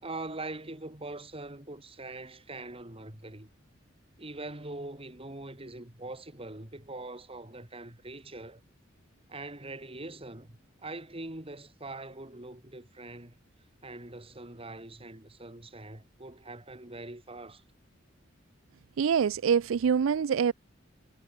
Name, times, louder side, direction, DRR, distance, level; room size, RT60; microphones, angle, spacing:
voice 1, 0.0-3.5 4.2-8.6 9.3-13.3 13.8-17.6, right 2 dB, 30° right, 3.4 m, -42 dB
voice 2, 19.0-20.5, right 7 dB, 85° right, 0.4 m, -25 dB
head